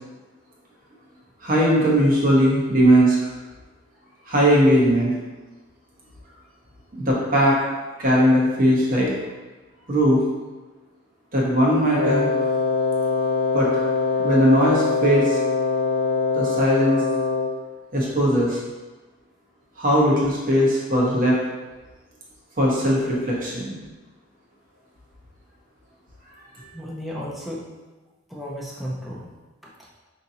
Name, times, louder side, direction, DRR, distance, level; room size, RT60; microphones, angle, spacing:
voice 1, 1.4-3.2 4.3-5.1 7.0-7.6 8.0-9.1 9.9-10.2 11.3-12.3 13.5-13.7 14.2-15.4 16.3-17.0 17.9-18.6 19.8-21.4 22.6-23.7, equal, 40° right, -4 dB, 0.9 m, -19 dB
Wind instrument woodwind instrument, 11.9-17.7, left 4 dB, 80° right, 0.6 m, -23 dB
voice 2, 26.7-27.6 28.3-29.3 29.6-29.9, equal, ahead, -5 dB, 0.6 m, -34 dB
5.2 x 2.8 x 2.7 m, 1.2 s
head